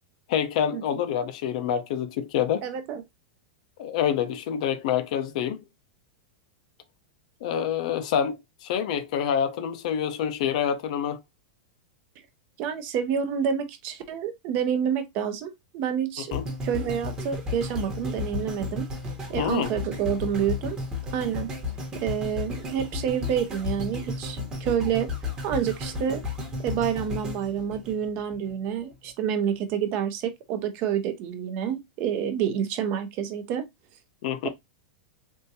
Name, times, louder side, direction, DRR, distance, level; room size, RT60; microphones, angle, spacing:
voice 1, 0.3-2.6 3.8-5.6 7.4-11.2 16.3-16.4 19.4-19.7 34.2-34.5, left 9 dB, 55° left, 0.5 m, -27 dB
voice 2, 2.6-3.0 12.6-16.3 16.6-18.9 19.3-20.8 21.1-21.5 21.9-25.1 25.4-26.2 26.6-33.7, right 8 dB, 40° right, 0.6 m, -28 dB
sound 1, 16.3-28.5 29.0-29.1, left 3 dB, 15° right, 1.0 m, -33 dB
3.6 x 2.6 x 2.7 m
supercardioid pair, 150°, 5 cm